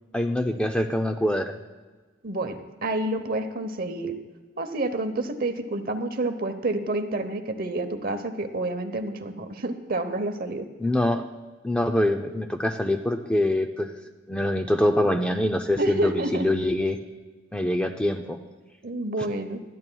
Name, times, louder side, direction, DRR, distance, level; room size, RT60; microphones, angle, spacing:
voice 1, 0.1-1.6 10.8-11.2 11.6-13.9 14.3-17.0 17.5-18.4, left 1 dB, 5° left, 5 dB, 0.4 m, -24 dB
voice 2, 2.2-4.2 4.6-10.7 15.8-16.5 18.8-19.6, right 2 dB, 45° right, 8 dB, 0.9 m, -29 dB
19.5 x 12.5 x 2.3 m, 1.3 s
head